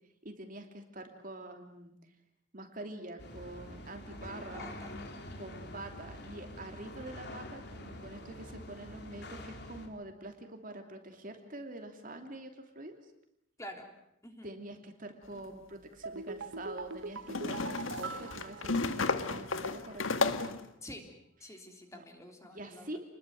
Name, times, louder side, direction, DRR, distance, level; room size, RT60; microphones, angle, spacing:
voice 1, 0.2-2.0 2.5-4.7 5.4-12.9 14.4-20.5 21.5-21.6 21.9-22.0 22.4-23.0, right 1 dB, 45° right, 5 dB, 2.9 m, -46 dB
sound 1, 3.2-9.9, left 1 dB, 55° left, 3.7 m, -46 dB
voice 2, 4.5-5.0 13.6-13.9 14.2-14.6 20.8-21.1 21.4-22.9, left 1 dB, 15° left, 3 dB, 3.5 m, -48 dB
sound 2, 15.3-15.4 17.3-20.7, left 3 dB, 85° left, 1.7 m, -33 dB
sound 3, 16.0-19.5 19.7-19.8, right 4 dB, 75° right, 1.1 m, -42 dB
29.0 x 21.0 x 7.8 m, 0.78 s
head